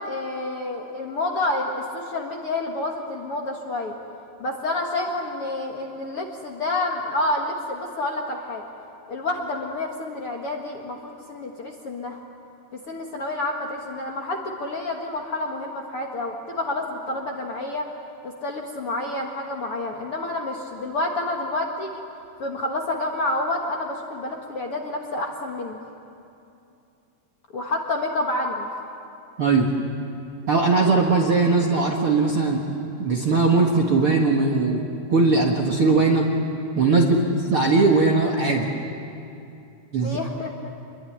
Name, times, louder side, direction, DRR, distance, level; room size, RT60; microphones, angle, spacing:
voice 1, 0.0-4.0 4.4-8.6 9.1-12.2 12.9-17.9 18.2-22.0 22.4-25.8 27.5-28.7 37.0-37.1 40.0-40.5, left 2 dB, 50° left, 0 dB, 1.9 m, -29 dB
voice 2, 29.4-29.7 30.5-32.6 33.0-36.2 36.7-38.7 39.9-40.2, right 3 dB, 50° right, 1 dB, 1.7 m, -20 dB
27.0 x 22.0 x 10.0 m, 2.7 s
omnidirectional pair, 4.5 m